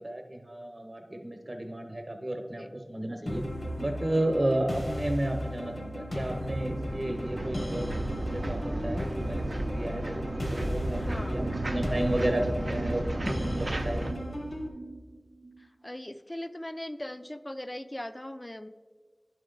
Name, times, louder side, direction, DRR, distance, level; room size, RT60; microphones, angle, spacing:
voice 1, 0.0-3.4 3.8-7.9 8.2-9.5 9.7-10.2 10.5-14.1, right 1 dB, 45° right, 4 dB, 0.9 m, -32 dB
sound 1, 3.3-14.7, equal, 80° left, 1.0 m, -36 dB
Passos Serralves, 6.1-14.1, right 1 dB, 65° right, 0.6 m, -33 dB
sound 2, 9.9-15.7, right 3 dB, 20° right, 0.6 m, -44 dB
voice 2, 10.9-11.4 15.6-18.7, left 1 dB, 25° left, 11 dB, 0.4 m, -39 dB
11.0 x 4.9 x 3.8 m, 1.5 s
wide cardioid pair, 55°, 0 cm